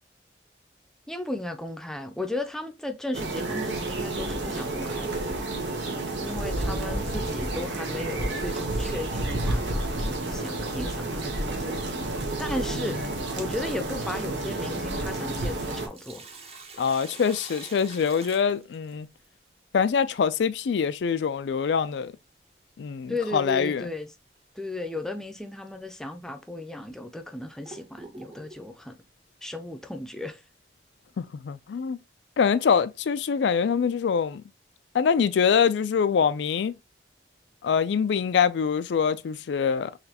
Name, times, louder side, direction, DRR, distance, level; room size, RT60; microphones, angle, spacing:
voice 1, 1.1-5.2 6.2-11.8 12.4-13.0 13.4-16.3 23.1-24.1 24.6-29.0 29.4-30.4, left 2 dB, 5° left, 0.5 m, -35 dB
sound 1, 3.1-15.9, right 2 dB, 90° right, 1.0 m, -30 dB
Sink (filling or washing), 15.9-19.3 21.7-21.8 23.6-23.8 24.3-24.4 25.2-25.4 26.1-26.2 26.8-28.7, right 3 dB, 35° right, 0.8 m, -46 dB
voice 2, 16.8-19.1 19.7-22.1 22.8-23.9 31.2-32.0 32.4-34.4 34.9-36.8 37.6-40.0, left 6 dB, 80° left, 0.4 m, -24 dB
4.0 x 3.1 x 2.8 m
head